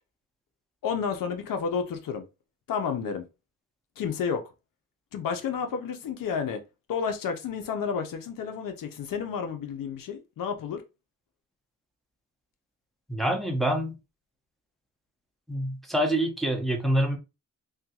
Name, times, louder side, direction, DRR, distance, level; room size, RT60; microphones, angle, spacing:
voice 1, 0.8-2.2 2.7-3.2 4.0-4.4 5.1-6.6 6.9-10.8, left 6 dB, 85° left, 0.7 m, -31 dB
voice 2, 13.1-14.0 15.5-17.2, right 1 dB, ahead, 0.9 m, -26 dB
3.5 x 2.3 x 2.8 m
cardioid pair, 80°, 33 cm